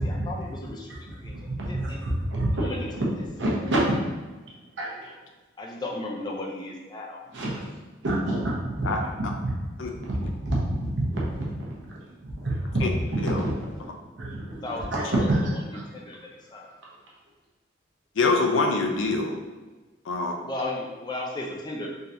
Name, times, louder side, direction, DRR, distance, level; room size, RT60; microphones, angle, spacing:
voice 1, 0.0-0.9 1.2-1.4 1.7-2.1 2.5-2.9 5.6-7.3 14.6-15.3 15.9-16.8 20.4-21.9, left 2 dB, 20° left, -1 dB, 0.4 m, -35 dB
voice 2, 1.1-2.7 3.4-3.8 4.8-5.1 7.3-7.6 8.0-9.5 9.9-11.9 12.2-12.8 13.1-13.7 14.2-15.8 19.1-19.2, right 1 dB, 65° right, -5 dB, 0.9 m, -28 dB
voice 3, 18.2-19.3 20.1-20.4, left 3 dB, 75° left, 2 dB, 0.5 m, -24 dB
3.8 x 2.8 x 2.6 m, 1.2 s
head